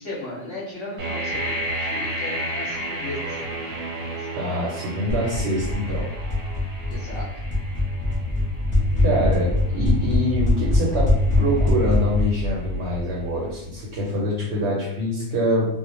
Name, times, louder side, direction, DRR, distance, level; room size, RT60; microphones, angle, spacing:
voice 1, 0.0-4.4 6.9-7.3, left 2 dB, 25° left, -9 dB, 0.9 m, -36 dB
sound 1, 1.0-12.8, right 1 dB, 80° right, 1.1 m, -33 dB
voice 2, 4.4-6.0 9.0-11.1 11.4-15.7, equal, 60° right, -5 dB, 0.8 m, -25 dB
sound 2, 5.1-13.8, left 2 dB, 10° right, 0.6 m, -23 dB
2.3 x 2.1 x 3.0 m, 0.83 s
omnidirectional pair, 1.5 m